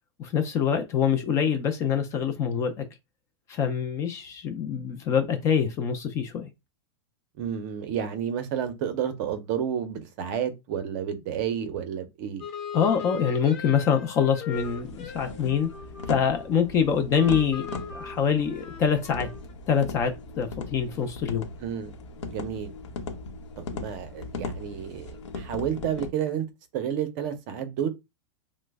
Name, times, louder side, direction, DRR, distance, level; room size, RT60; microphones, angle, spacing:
voice 1, 0.2-2.9 3.5-6.5 12.7-15.7 16.1-19.3 19.7-21.5, left 7 dB, 20° left, 0.3 m, -25 dB
voice 2, 7.4-12.4 21.6-21.9 22.3-22.7 23.6-26.5 26.7-27.9, right 9 dB, 40° right, 0.5 m, -30 dB
sound 1, 12.4-16.8 17.1-19.5, left 6 dB, 40° left, 0.8 m, -40 dB
sound 2, 14.5-26.1, left 3 dB, 90° left, 0.7 m, -38 dB
3.0 x 2.0 x 3.3 m
supercardioid pair, 160°, 15 cm